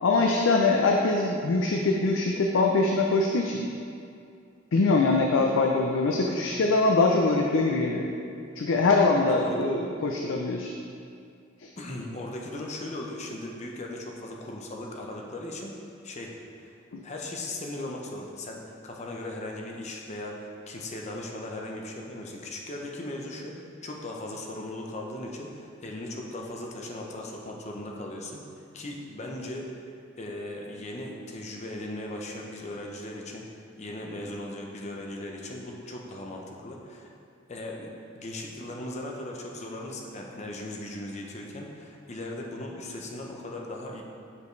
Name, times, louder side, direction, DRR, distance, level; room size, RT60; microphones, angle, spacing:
voice 1, 0.0-3.6 4.7-8.1 8.6-10.7 11.6-11.7 16.9-17.0, left 3 dB, 75° left, 1 dB, 0.4 m, -23 dB
voice 2, 9.3-9.7 11.8-15.7 16.0-16.3 16.6-16.8 17.0-23.6 23.8-29.9 30.2-33.5 33.8-37.1 37.5-44.0, left 1 dB, 35° left, 0 dB, 0.7 m, -38 dB
6.9 x 5.1 x 3.2 m, 2.4 s
head